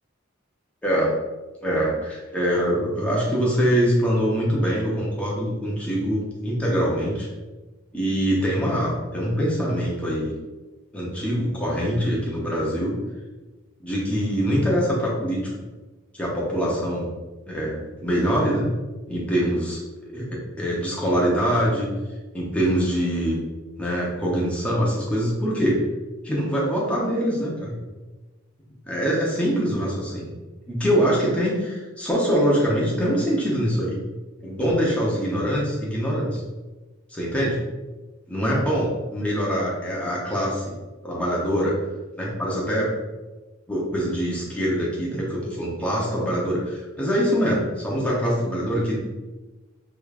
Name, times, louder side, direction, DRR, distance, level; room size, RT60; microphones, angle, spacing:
voice 1, 0.8-1.1 1.6-7.3 7.9-10.3 10.9-13.0 13.8-15.7 16.1-17.1 17.5-18.7 19.1-19.8 20.1-21.9 22.3-23.4 23.8-25.8 26.2-27.8 28.9-30.3 30.7-34.0 34.4-36.4 37.1-37.6 38.3-40.8 41.0-41.8 42.2-42.9 43.7-49.0, equal, 5° left, -5 dB, 0.6 m, -24 dB
4.9 x 2.4 x 2.3 m, 1.2 s
head